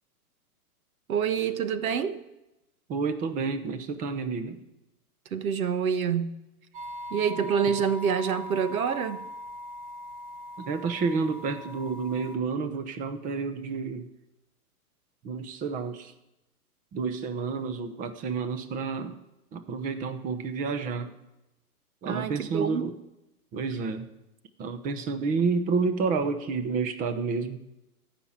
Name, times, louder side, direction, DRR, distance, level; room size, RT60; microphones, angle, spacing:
voice 1, 1.1-2.2 5.3-6.4 7.1-9.2 22.0-22.9, right 7 dB, 65° right, 1.3 m, -27 dB
voice 2, 2.9-4.6 10.6-14.1 15.2-16.1 16.9-19.2 19.5-21.1 22.0-22.9 23.5-24.1 24.6-27.6, right 4 dB, 20° right, 0.8 m, -30 dB
sound 1, 6.7-12.4, left 1 dB, 35° right, 1.3 m, -40 dB
15.5 x 5.9 x 9.9 m
hypercardioid pair, 145°, 45 cm